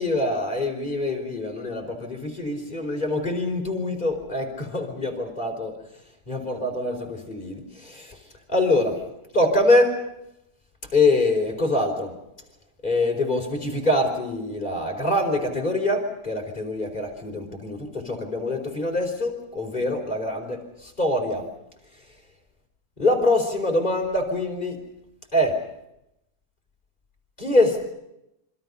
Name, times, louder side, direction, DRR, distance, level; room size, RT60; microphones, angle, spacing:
voice 1, 0.0-5.7 6.3-8.2 8.5-9.0 9.3-10.0 10.9-12.1 12.8-21.5 23.0-24.8 25.3-25.6 27.4-27.8, left 2 dB, 25° left, 1 dB, 4.8 m, -24 dB
27.0 x 25.5 x 5.6 m, 0.86 s
omnidirectional pair, 2.1 m